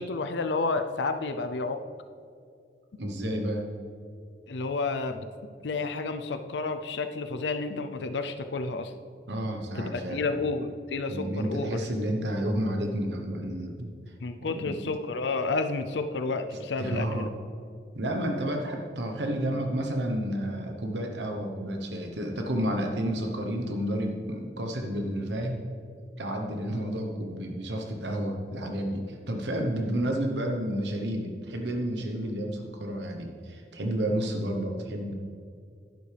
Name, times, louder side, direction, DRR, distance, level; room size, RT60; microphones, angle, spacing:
voice 1, 0.0-1.8 4.5-5.3 5.6-8.9 9.7-11.8 14.2-17.3, left 3 dB, 80° left, 8 dB, 0.5 m, -30 dB
voice 2, 3.0-3.7 9.3-10.2 11.1-13.9 14.4-14.7 16.8-17.3 17.9-25.7 26.2-35.2, right 1 dB, 75° right, 2 dB, 1.0 m, -31 dB
11.5 x 11.5 x 3.4 m, 2.4 s
head